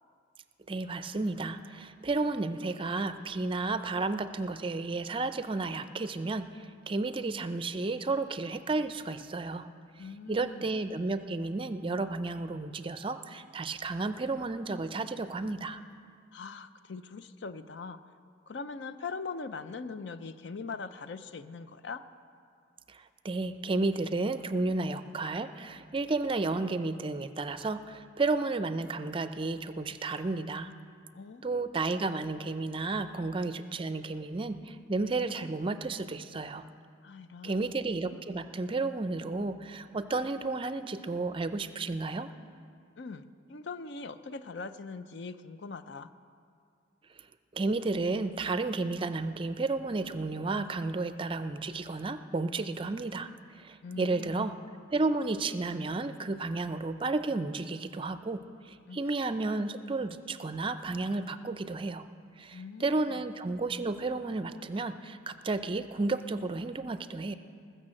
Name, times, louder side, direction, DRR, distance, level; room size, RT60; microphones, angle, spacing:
voice 1, 0.7-9.7 10.3-15.8 22.9-30.7 31.4-36.6 37.4-42.3 47.5-54.5 54.9-62.1 62.4-67.4, right 3 dB, 30° right, 11 dB, 0.5 m, -32 dB
voice 2, 10.0-10.7 16.3-18.0 18.5-22.0 31.1-31.7 33.1-33.2 37.0-37.7 43.0-46.1 53.8-54.5 58.9-59.1 62.5-63.2, left 4 dB, 65° left, 12 dB, 0.5 m, -41 dB
20.0 x 6.6 x 7.6 m, 2.3 s
head